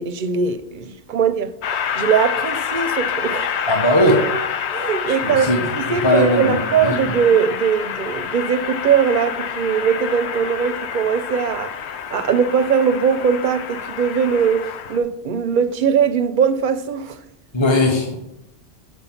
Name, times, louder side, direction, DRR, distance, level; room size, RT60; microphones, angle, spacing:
voice 1, 0.0-1.5 2.0-3.5 4.7-17.2, right 7 dB, 60° right, 0.6 m, -20 dB
Train, 1.6-15.0, left 8 dB, 85° left, 0.9 m, -27 dB
voice 2, 3.7-4.2 5.2-5.6 5.9-6.9 17.5-18.2, left 1 dB, 25° left, 1.0 m, -18 dB
6.8 x 4.8 x 5.7 m
omnidirectional pair, 1.1 m